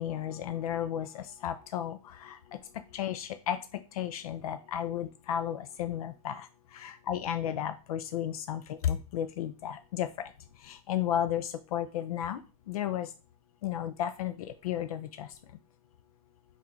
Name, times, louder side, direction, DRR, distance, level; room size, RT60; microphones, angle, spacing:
voice 1, 0.0-2.4 2.9-3.6 3.9-6.5 6.8-10.1 10.7-12.4 12.7-13.1 13.6-15.3, left 10 dB, 75° left, 9 dB, 0.4 m, -33 dB
3.7 x 2.4 x 4.3 m, 0.33 s
supercardioid pair, 175°, 19 cm